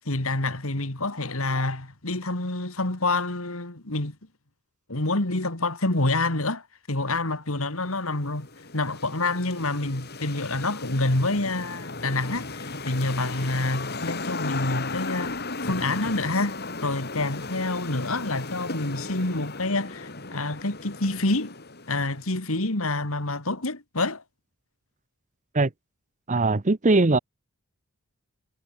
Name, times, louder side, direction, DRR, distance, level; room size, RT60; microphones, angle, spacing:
voice 1, 0.1-4.2 4.9-8.5 8.7-15.4 15.6-21.5 21.9-24.2, left 2 dB, 70° left, 2.8 m, -27 dB
sound 1, 7.8-22.4, left 3 dB, 50° left, 5.2 m, -36 dB
voice 2, 26.3-27.2, right 3 dB, 35° right, 0.8 m, -20 dB
head